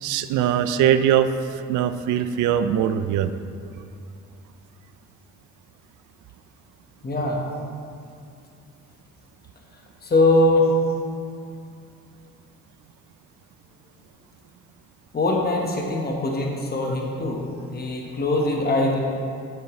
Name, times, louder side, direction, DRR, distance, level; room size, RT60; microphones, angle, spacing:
voice 1, 0.0-1.3 1.7-3.3, right 10 dB, 80° right, 11 dB, 0.5 m, -21 dB
voice 2, 7.0-7.4 10.0-10.7 15.1-17.4 17.7-19.0, left 2 dB, 30° left, 0 dB, 1.2 m, -22 dB
8.5 x 8.2 x 3.1 m, 2.4 s
cardioid pair, 90°, 30 cm